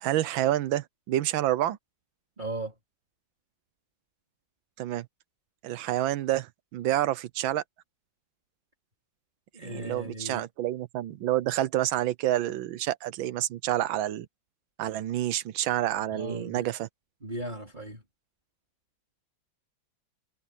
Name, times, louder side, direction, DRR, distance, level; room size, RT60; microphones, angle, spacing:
voice 1, 0.0-1.8 4.8-5.1 5.6-7.6 9.6-14.3 14.8-16.9, right 13 dB, 90° right, 1.6 m, -28 dB
voice 2, 2.4-2.7 9.5-10.4 16.1-16.7 17.2-18.0, right 1 dB, 25° right, 4.1 m, -37 dB
omnidirectional pair, 2.1 m